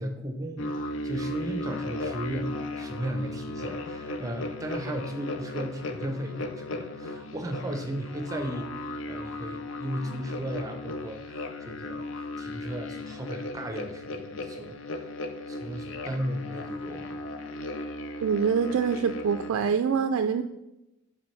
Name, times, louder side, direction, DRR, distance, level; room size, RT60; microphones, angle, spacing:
voice 1, 0.0-15.1 15.5-17.2, right 1 dB, 15° right, 5 dB, 0.6 m, -36 dB
sound 1, 0.6-19.5, left 2 dB, 65° left, 0.5 m, -36 dB
voice 2, 18.2-20.4, right 6 dB, 85° right, 7 dB, 0.3 m, -25 dB
7.3 x 4.6 x 3.2 m, 0.93 s
head